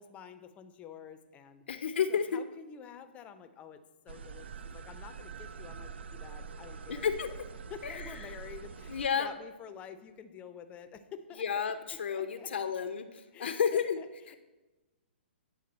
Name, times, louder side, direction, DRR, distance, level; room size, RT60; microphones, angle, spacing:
voice 1, 0.0-1.6 2.1-7.1 7.7-11.7 12.1-12.7 13.3-13.6 14.0-14.4, left 7 dB, 20° left, 9 dB, 0.5 m, -49 dB
voice 2, 1.7-2.4 6.9-7.3 7.8-8.1 8.9-9.3 11.4-14.0, left 7 dB, 70° left, 9 dB, 0.5 m, -31 dB
sound 1, 4.1-9.1, right 5 dB, 70° right, 0.3 m, -45 dB
9.3 x 3.8 x 4.2 m, 1.1 s
hypercardioid pair, 125°, 6 cm